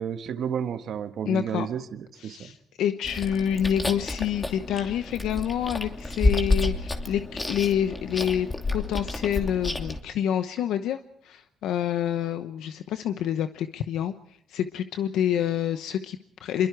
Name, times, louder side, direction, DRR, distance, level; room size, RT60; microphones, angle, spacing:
voice 1, 0.0-2.4, right 8 dB, 65° right, 9 dB, 1.6 m, -31 dB
voice 2, 1.3-1.7 2.2-8.5 8.7-14.1 14.5-16.7, left 9 dB, 85° left, 9 dB, 1.0 m, -27 dB
Chewing mastication, 3.0-10.0, left 2 dB, 20° left, 2.8 m, -29 dB
27.0 x 23.0 x 4.7 m, 0.68 s
cardioid pair, 90°, 0 cm